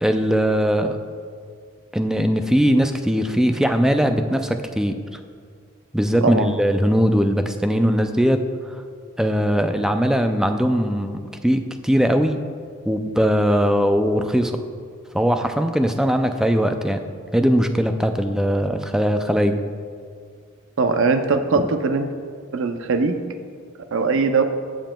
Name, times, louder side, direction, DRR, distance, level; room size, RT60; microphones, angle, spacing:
voice 1, 0.0-1.0 1.9-5.2 5.9-8.8 9.2-12.4 12.9-14.6 15.1-17.0 17.3-19.6 21.6-21.7, equal, 5° right, 7 dB, 0.3 m, -20 dB
voice 2, 20.8-22.1 22.5-23.2 23.9-24.4, right 4 dB, 60° right, 8 dB, 0.5 m, -20 dB
15.0 x 7.1 x 2.2 m, 2.1 s
head